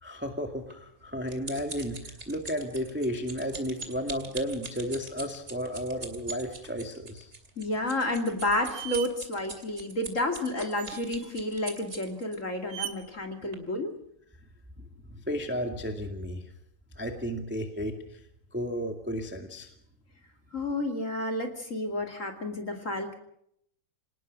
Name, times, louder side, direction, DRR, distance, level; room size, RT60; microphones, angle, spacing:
voice 1, 0.0-7.3 15.1-16.4 17.0-18.0 18.5-19.7, equal, 5° right, 4 dB, 1.2 m, -33 dB
sound 1, 0.7-12.4 13.0-13.2 13.5-13.6, right 3 dB, 25° right, 2.4 m, -43 dB
voice 2, 7.6-13.9 20.5-23.1, left 1 dB, 25° left, 4 dB, 2.4 m, -31 dB
sound 2, 8.1-8.2 8.7-9.1 10.8-11.3 12.7-13.0, right 12 dB, 55° right, 2.3 m, -38 dB
26.5 x 19.0 x 6.2 m, 0.71 s
omnidirectional pair, 3.5 m